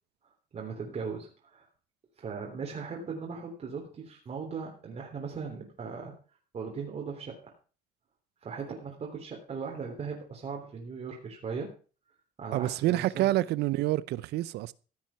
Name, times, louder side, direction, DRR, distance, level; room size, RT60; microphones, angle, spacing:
voice 1, 0.5-1.7 2.2-6.1 6.5-7.5 8.4-11.7 12.4-13.4, right 5 dB, 40° right, 3.5 m, -38 dB
voice 2, 12.5-14.7, right 16 dB, 80° right, 0.7 m, -27 dB
15.0 x 7.4 x 5.9 m
cardioid pair, 110°, 17 cm